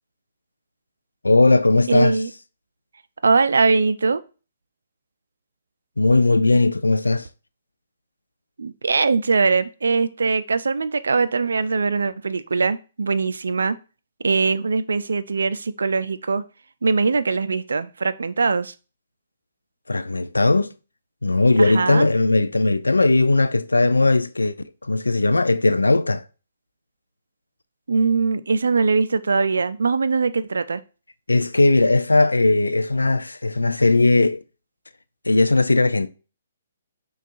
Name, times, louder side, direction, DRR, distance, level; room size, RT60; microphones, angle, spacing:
voice 1, 1.2-2.2 6.0-7.3 19.9-20.7 21.2-24.5 24.9-26.2 31.3-34.4 35.3-36.1, left 2 dB, 85° left, 0.3 m, -18 dB
voice 2, 1.9-2.3 3.2-4.2 8.6-13.8 14.2-16.4 16.8-18.7 21.6-22.1 27.9-30.8, right 4 dB, 70° right, 0.3 m, -21 dB
6.0 x 2.3 x 2.6 m
figure-of-eight pair, 130°, 0 cm